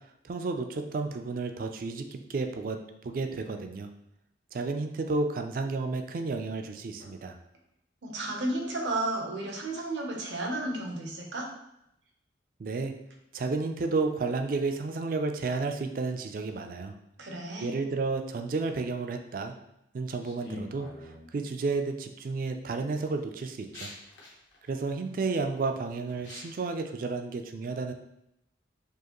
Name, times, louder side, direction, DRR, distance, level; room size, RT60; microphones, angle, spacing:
voice 1, 0.2-3.9 4.5-7.4 12.6-12.9 13.3-17.0 17.6-19.5 19.9-23.9 24.7-27.9, right 3 dB, 50° right, 6 dB, 0.3 m, -32 dB
voice 2, 8.0-11.5 17.2-17.8, right 2 dB, 80° right, 1 dB, 0.8 m, -33 dB
sound 1, 20.2-21.3 22.1-22.5 23.0-26.6, left 2 dB, 75° left, 0.9 m, -45 dB
4.6 x 2.5 x 3.0 m, 0.80 s
head